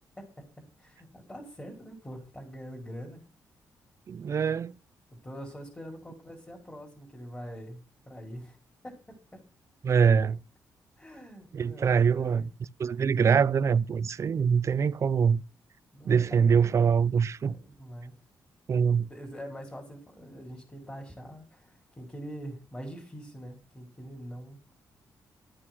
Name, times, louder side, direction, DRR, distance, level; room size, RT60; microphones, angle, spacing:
voice 1, 0.2-3.2 5.2-7.8 8.1-8.6 8.8-9.2 11.0-12.5 14.1-14.2 15.9-18.1 19.1-24.6, equal, 15° left, 5.3 m, -44 dB
voice 2, 4.1-4.8 9.8-10.4 11.5-12.5 12.8-15.4 16.0-17.5 18.7-19.1, right 6 dB, 45° right, 0.5 m, -24 dB
13.0 x 8.7 x 6.2 m
cardioid pair, 120°, 7 cm